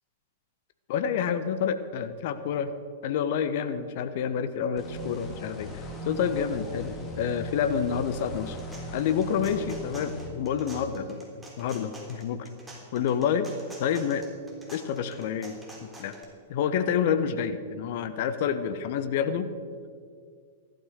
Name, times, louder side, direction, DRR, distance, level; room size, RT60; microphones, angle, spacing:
voice 1, 0.9-2.7 3.0-8.6 8.9-11.3 11.6-12.5 12.9-13.5 13.8-14.2 14.7-16.1 16.5-19.5, left 7 dB, 50° left, 11 dB, 1.1 m, -28 dB
sound 1, 4.8-10.3, equal, 20° left, 2.7 m, -39 dB
sound 2, 8.2-16.2, right 2 dB, 10° right, 3.6 m, -48 dB
14.5 x 12.0 x 6.4 m, 2.1 s
figure-of-eight pair, 100°, 0 cm